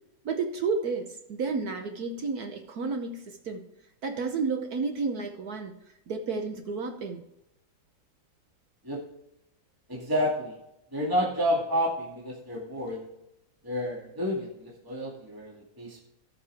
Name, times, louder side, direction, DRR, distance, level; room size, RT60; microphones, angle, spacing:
voice 1, 0.2-3.6 4.0-5.7 6.1-7.2, right 4 dB, 60° right, 4 dB, 1.2 m, -31 dB
voice 2, 9.9-10.6 10.9-13.1 13.6-16.0, equal, 10° right, -4 dB, 2.2 m, -30 dB
17.0 x 5.8 x 3.4 m, 0.86 s
omnidirectional pair, 2.1 m